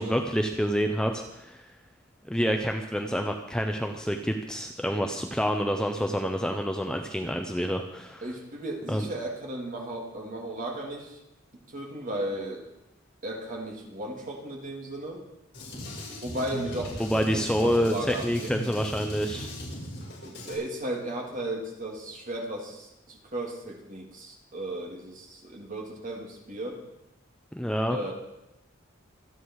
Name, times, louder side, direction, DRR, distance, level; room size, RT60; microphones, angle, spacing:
voice 1, 0.0-1.6 2.3-8.2 8.9-9.1 17.0-19.5 27.5-28.0, equal, 5° left, 4 dB, 0.8 m, -28 dB
voice 2, 8.2-11.2 11.7-12.6 13.2-15.2 16.2-18.5 20.2-26.8 27.9-28.1, right 1 dB, 40° right, 0 dB, 3.1 m, -35 dB
Drum kit, 15.5-20.5, left 1 dB, 55° left, 6.5 m, -38 dB
26.0 x 9.0 x 4.8 m, 0.89 s
head